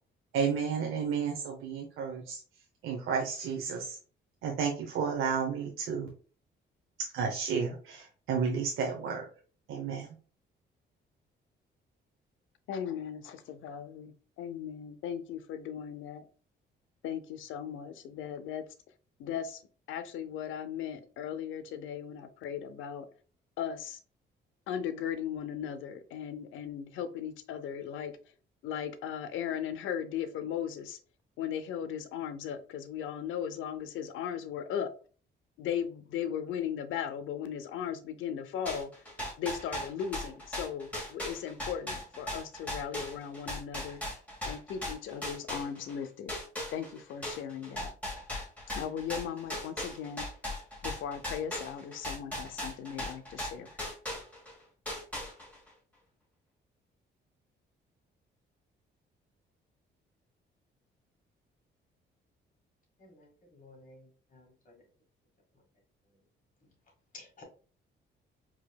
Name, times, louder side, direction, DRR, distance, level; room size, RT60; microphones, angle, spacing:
voice 1, 0.3-2.4 2.8-4.0 4.4-6.1 7.1-9.3 9.7-10.2, right 6 dB, 85° right, 0.8 m, -32 dB
voice 2, 12.7-16.2 17.0-18.6 19.2-19.6 19.9-23.1 23.6-24.0 24.7-28.2 28.6-31.0 31.4-34.9 35.6-38.9 39.4-44.0 44.4-46.3 46.7-47.9 48.7-50.2 50.8-53.7, left 8 dB, 80° left, 0.6 m, -37 dB
sound 1, 38.7-46.0 46.3-54.5 54.9-55.7, left 1 dB, 5° left, 1.8 m, -38 dB
voice 3, 63.0-64.7 67.1-67.4, left 3 dB, 40° left, 1.8 m, -54 dB
4.7 x 2.9 x 2.2 m
cardioid pair, 90°, 20 cm